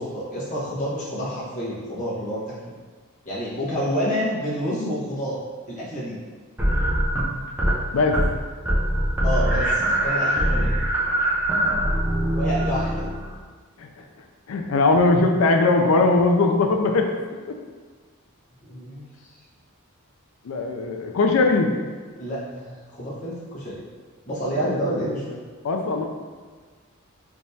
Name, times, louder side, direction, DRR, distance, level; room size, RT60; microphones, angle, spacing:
voice 1, 0.0-2.7 3.2-5.4 5.7-6.2 9.2-10.7 12.3-13.1 18.6-19.3 22.2-23.8 24.3-25.4, equal, 35° left, -9 dB, 1.1 m, -28 dB
sound 1, 6.6-7.8 8.1-8.4 8.7-13.4, right 1 dB, 10° right, 0.5 m, -22 dB
voice 2, 14.5-17.1 17.5-17.6 20.4-21.7 24.5-24.7 25.6-26.1, left 3 dB, 75° left, 4 dB, 0.4 m, -20 dB
3.4 x 3.0 x 2.7 m, 1.5 s
head